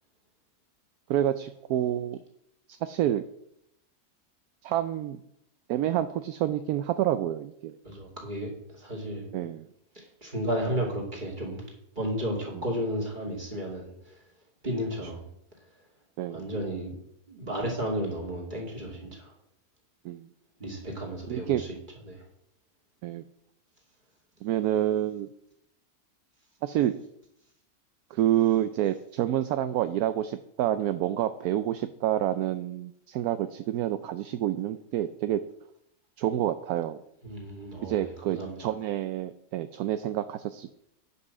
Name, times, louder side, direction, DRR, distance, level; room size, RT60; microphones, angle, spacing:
voice 1, 1.1-2.2 2.7-3.2 4.6-5.2 5.7-7.8 9.3-9.7 16.2-16.4 20.0-20.3 21.3-21.6 23.0-23.2 24.4-25.3 26.6-26.9 28.1-35.4 36.2-37.0 37.8-40.7, right 12 dB, 75° right, 11 dB, 1.0 m, -28 dB
voice 2, 7.8-9.3 9.9-11.6 11.9-14.2 14.6-15.3 16.3-16.9 17.3-19.3 20.6-21.7 22.0-22.2 37.2-38.6, equal, 30° right, -2 dB, 2.8 m, -33 dB
9.5 x 5.6 x 6.6 m, 0.76 s
omnidirectional pair, 1.7 m